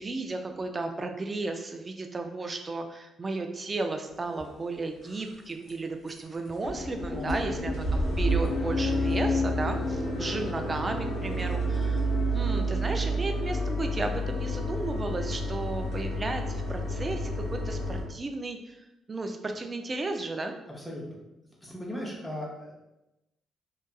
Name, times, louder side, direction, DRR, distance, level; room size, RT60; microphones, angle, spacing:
voice 1, 0.0-18.6 19.1-20.6, right 3 dB, 30° right, 5 dB, 0.3 m, -34 dB
sound 1, 4.4-4.5 5.0-5.3 5.7-5.8 6.1-6.2 6.4-18.0, equal, 70° left, 0.7 m, -29 dB
voice 2, 7.1-7.6 20.8-21.0 21.6-22.8, left 1 dB, 5° left, -5 dB, 0.7 m, -38 dB
2.7 x 2.3 x 2.2 m, 0.93 s
cardioid pair, 90°, 0 cm